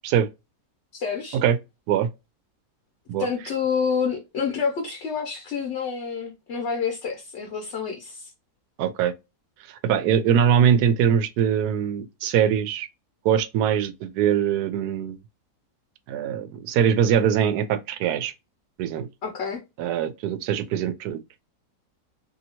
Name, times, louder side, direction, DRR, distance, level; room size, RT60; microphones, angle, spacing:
voice 1, 0.9-1.4 3.2-8.3 19.2-19.6, left 6 dB, 55° left, 0.9 m, -28 dB
voice 2, 8.8-9.1 9.7-12.9 13.2-15.2 16.1-18.3 18.8-19.1 19.8-21.4, right 8 dB, 80° right, 1.1 m, -22 dB
2.8 x 2.8 x 2.8 m
omnidirectional pair, 1.7 m